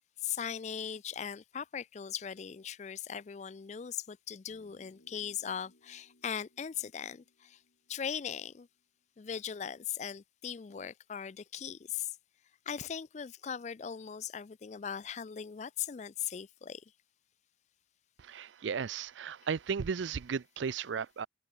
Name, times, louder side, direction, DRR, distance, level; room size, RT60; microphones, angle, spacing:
voice 1, 0.2-7.6 7.9-8.7 9.2-12.2 12.7-16.8, left 8 dB, 40° left, 0.4 m, -39 dB
sound 1, 4.5-9.0, left 1 dB, 80° left, 3.8 m, -67 dB
voice 2, 18.2-21.3, right 6 dB, 85° right, 0.5 m, -35 dB
open air
head